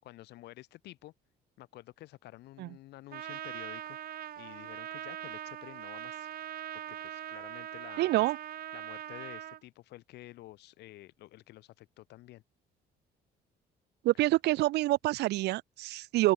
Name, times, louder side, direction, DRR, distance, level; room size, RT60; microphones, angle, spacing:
voice 1, 0.0-1.1 1.6-4.0 4.4-6.3 6.9-8.1 8.7-12.4, left 16 dB, 80° left, 6.5 m, -50 dB
Trumpet, 3.1-9.6, right 12 dB, 60° right, 1.5 m, -42 dB
voice 2, 8.0-8.4 14.0-16.3, right 18 dB, 80° right, 1.2 m, -27 dB
open air
cardioid pair, 110°, 17 cm